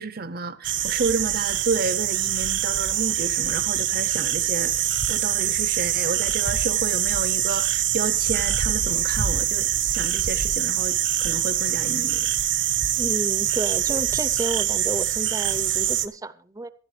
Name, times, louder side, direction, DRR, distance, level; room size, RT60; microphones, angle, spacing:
voice 1, 0.0-4.7 5.1-12.3, right 4 dB, 55° right, 0.7 m, -30 dB
sound 1, 0.6-16.1, right 11 dB, 75° right, 1.0 m, -24 dB
voice 2, 13.0-16.7, right 1 dB, 20° right, 0.7 m, -31 dB
18.5 x 12.0 x 3.2 m
head